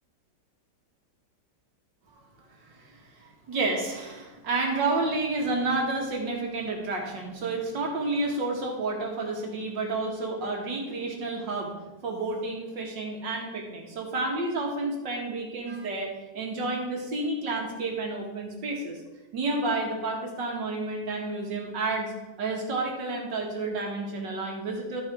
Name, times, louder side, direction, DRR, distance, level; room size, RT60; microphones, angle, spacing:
voice 1, 2.6-11.7 12.0-19.0 19.3-22.1 22.4-25.0, right 3 dB, 80° right, 0 dB, 2.5 m, -30 dB
13.5 x 5.7 x 4.5 m, 1.1 s
omnidirectional pair, 2.0 m